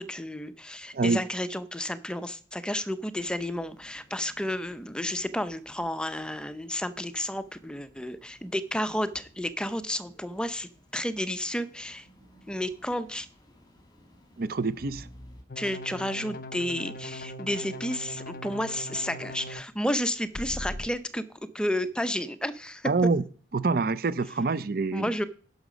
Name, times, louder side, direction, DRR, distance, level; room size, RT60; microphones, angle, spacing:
voice 1, 0.0-12.1 12.5-13.3 15.6-21.2 21.5-22.9 24.9-25.3, left 1 dB, 5° left, 0.6 m, -31 dB
sound 1, 3.1-15.4, equal, 20° left, 2.2 m, -56 dB
voice 2, 14.4-15.1 22.8-23.2 23.5-25.1, right 3 dB, 50° right, 0.5 m, -26 dB
sound 2, 15.5-19.6 20.3-20.9, left 1 dB, 50° left, 0.9 m, -39 dB
11.0 x 6.5 x 5.1 m
head